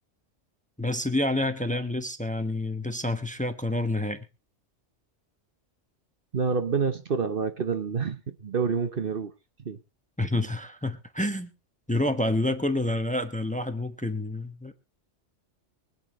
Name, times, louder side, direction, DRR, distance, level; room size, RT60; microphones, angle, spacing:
voice 1, 0.8-4.2 10.2-11.5 11.9-14.7, left 1 dB, 5° left, 1.1 m, -28 dB
voice 2, 6.3-9.3 9.6-9.8, right 5 dB, 50° right, 1.1 m, -28 dB
24.0 x 8.8 x 3.0 m
omnidirectional pair, 1.2 m